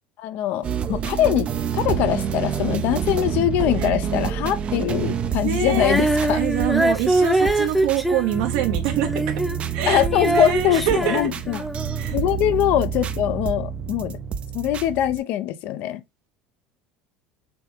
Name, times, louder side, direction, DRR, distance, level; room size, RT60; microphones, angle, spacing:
voice 1, 0.2-6.4 9.9-11.6 12.1-14.2 14.5-16.0, left 12 dB, 60° left, 0.6 m, -23 dB
sound 1, 0.6-15.2, right 8 dB, 35° right, 0.6 m, -28 dB
voice 2, 5.4-6.0 6.3-9.2 9.7-11.2 12.0-12.2, right 8 dB, 80° right, 1.2 m, -25 dB
Female singing, 5.7-12.1 12.8-12.9, right 1 dB, ahead, 0.8 m, -23 dB
6.0 x 2.3 x 3.5 m
supercardioid pair, 115°, 3 cm